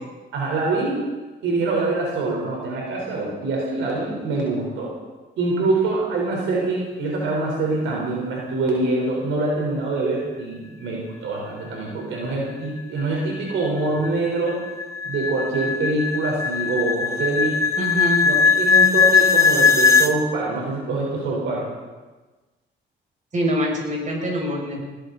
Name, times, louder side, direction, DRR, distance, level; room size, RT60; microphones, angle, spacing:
voice 1, 0.3-1.0 1.4-4.9 5.4-14.6 15.0-17.6 18.2-21.7, right 2 dB, 80° right, -2 dB, 4.3 m, -24 dB
glass buildup, 13.0-20.1, left 5 dB, 15° left, 1.1 m, -19 dB
voice 2, 17.8-18.2 23.3-24.8, equal, 40° right, -1 dB, 6.5 m, -24 dB
20.0 x 16.0 x 4.1 m, 1.3 s
cardioid pair, 90°, 20 cm